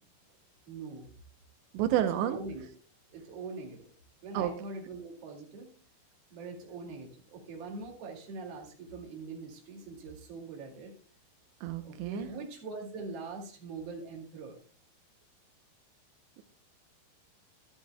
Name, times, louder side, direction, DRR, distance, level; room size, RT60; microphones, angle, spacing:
voice 1, 0.7-1.1 2.2-2.7 3.1-3.9 4.2-5.7 6.3-10.9 11.8-14.6, right 3 dB, 40° right, 0 dB, 2.7 m, -42 dB
voice 2, 1.7-2.4 4.3-4.5 11.6-12.3, right 11 dB, 85° right, 8 dB, 3.0 m, -29 dB
13.0 x 12.5 x 2.2 m, 0.40 s
omnidirectional pair, 5.1 m